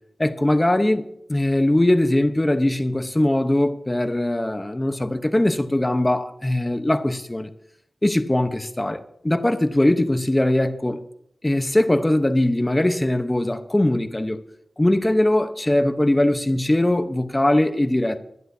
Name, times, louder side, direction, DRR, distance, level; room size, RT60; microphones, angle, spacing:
voice 1, 0.2-7.5 8.0-11.0 11.4-14.4 14.8-18.2, left 1 dB, 15° left, 0.9 m, -21 dB
21.5 x 11.0 x 2.8 m
wide cardioid pair, 90°, 0 cm